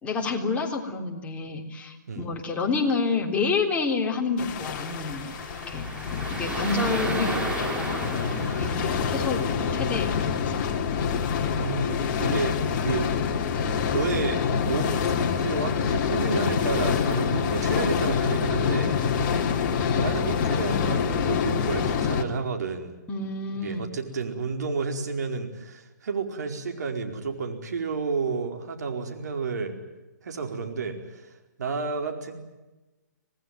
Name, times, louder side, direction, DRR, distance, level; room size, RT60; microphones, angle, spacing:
voice 1, 0.0-5.3 5.7-8.1 8.4-10.3 23.1-23.8, left 4 dB, 15° left, 1 dB, 3.5 m, -29 dB
sound 1, 4.4-22.2, left 6 dB, 35° left, 2.7 m, -26 dB
sound 2, 4.8-10.3, right 1 dB, 10° right, 5.3 m, -34 dB
voice 2, 8.3-9.2 11.5-13.1 13.9-18.9 19.3-19.4 20.0-22.9 23.5-29.8 30.2-31.3 31.6-32.3, right 4 dB, 65° right, 4 dB, 4.6 m, -31 dB
25.5 x 19.0 x 9.2 m, 1.1 s
hypercardioid pair, 140°, 10 cm